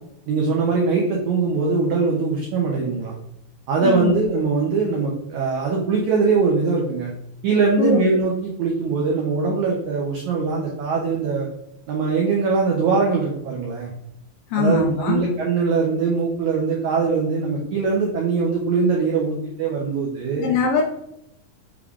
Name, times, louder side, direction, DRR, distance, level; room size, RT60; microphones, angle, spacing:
voice 1, 0.3-3.1 3.7-7.1 7.4-11.5 11.9-13.9 14.6-20.4, right 4 dB, 90° right, -2 dB, 1.6 m, -22 dB
voice 2, 3.8-4.2 7.8-8.0 14.5-15.2 20.4-20.8, left 4 dB, 80° left, 1 dB, 1.9 m, -21 dB
6.3 x 2.3 x 3.6 m, 0.80 s
omnidirectional pair, 4.2 m